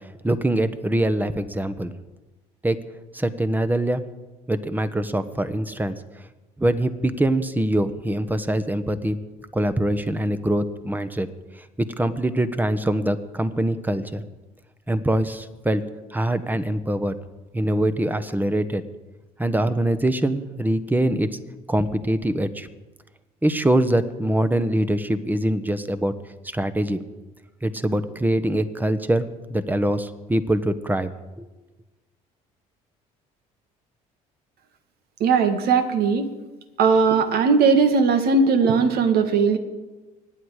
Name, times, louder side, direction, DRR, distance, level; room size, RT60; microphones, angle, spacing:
voice 1, 0.0-1.9 2.6-2.8 3.1-4.0 4.5-5.9 6.6-9.2 9.5-11.3 11.5-14.2 14.9-15.8 16.1-17.1 17.5-18.8 19.4-21.4 21.7-22.7 23.4-26.1 26.4-27.0 27.6-31.1 31.4-31.5, right 1 dB, 10° right, 11 dB, 1.2 m, -23 dB
voice 2, 35.2-36.3 36.8-39.6, right 5 dB, 60° right, 8 dB, 1.7 m, -18 dB
25.0 x 9.5 x 4.9 m, 1.2 s
hypercardioid pair, 65°, 18 cm